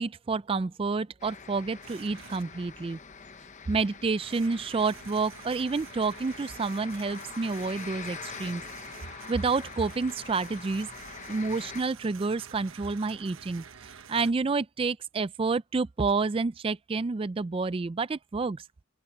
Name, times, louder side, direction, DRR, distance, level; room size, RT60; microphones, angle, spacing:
voice 1, 0.0-3.0 3.7-8.6 9.3-10.9 11.3-18.6, right 4 dB, 25° right, 0.3 m, -29 dB
sound 1, 1.2-11.8, left 6 dB, 35° left, 0.9 m, -45 dB
sound 2, 1.8-2.4 4.2-14.3, right 7 dB, 75° right, 1.1 m, -49 dB
open air
head